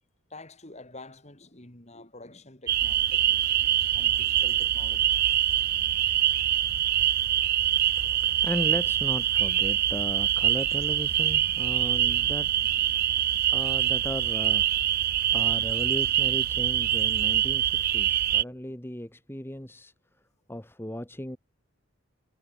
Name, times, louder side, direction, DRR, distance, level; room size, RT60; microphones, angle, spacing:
voice 1, 0.3-3.5 3.9-5.1, left 2 dB, 30° left, 3.2 m, -47 dB
sound 1, 2.7-18.4, right 11 dB, 45° right, 0.5 m, -24 dB
voice 2, 8.0-12.5 13.5-15.0 15.3-19.9 20.5-21.4, equal, 10° left, 1.4 m, -36 dB
head